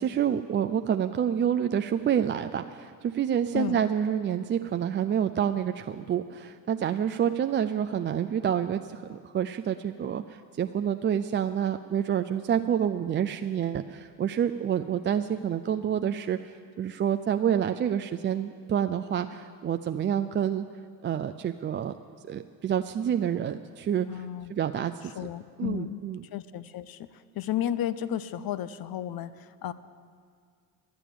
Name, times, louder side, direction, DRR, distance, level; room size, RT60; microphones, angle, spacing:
voice 1, 0.0-20.7 21.0-21.9 22.2-24.2 24.5-24.9 25.6-26.2, right 9 dB, 25° right, 8 dB, 0.4 m, -28 dB
voice 2, 24.1-24.5 25.2-26.0 26.3-27.1 27.4-29.7, left 11 dB, 45° left, 15 dB, 0.7 m, -33 dB
12.5 x 8.3 x 8.9 m, 2.1 s
hypercardioid pair, 55°, 49 cm